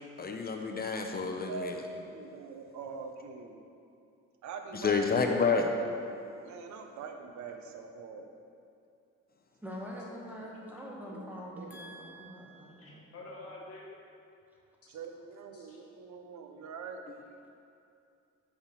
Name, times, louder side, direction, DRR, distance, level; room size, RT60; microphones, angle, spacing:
voice 1, 0.2-1.7 4.7-5.7, left 5 dB, 30° left, 3 dB, 0.5 m, -29 dB
voice 2, 1.2-3.6 4.4-5.7 5.9-6.1 6.4-8.3 11.1-12.0 14.9-17.0, right 5 dB, 70° right, 5 dB, 0.7 m, -44 dB
voice 3, 9.6-13.4, equal, 5° right, -3 dB, 1.2 m, -44 dB
voice 4, 12.8-13.8 15.5-15.8, left 2 dB, 50° left, -4 dB, 1.2 m, -47 dB
5.6 x 4.5 x 5.2 m, 2.5 s
cardioid pair, 90°, 30 cm